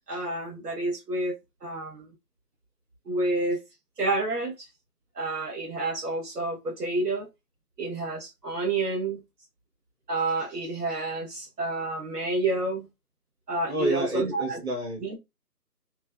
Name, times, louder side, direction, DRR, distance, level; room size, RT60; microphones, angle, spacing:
voice 1, 0.1-2.1 3.1-3.6 4.0-4.7 5.1-7.3 7.8-9.2 10.1-12.9 13.5-14.6 15.0-15.2, right 2 dB, 75° right, 1.1 m, -29 dB
voice 2, 13.7-15.2, right 2 dB, 40° right, 1.5 m, -30 dB
3.1 x 2.1 x 2.4 m
figure-of-eight pair, 165°, 48 cm